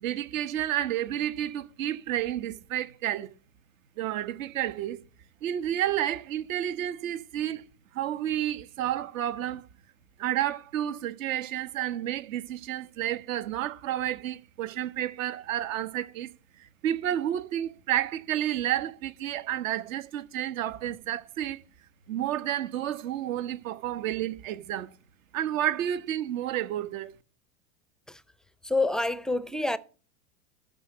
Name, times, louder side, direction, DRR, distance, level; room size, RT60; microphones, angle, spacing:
voice 1, 0.0-3.3 4.0-5.0 5.4-7.6 7.9-9.6 10.2-16.3 16.6-21.6 22.1-24.9 25.3-27.1, right 12 dB, 65° right, 1.4 m, -30 dB
voice 2, 28.6-29.8, left 2 dB, ahead, 0.4 m, -27 dB
13.0 x 5.1 x 8.0 m
hypercardioid pair, 100°, 42 cm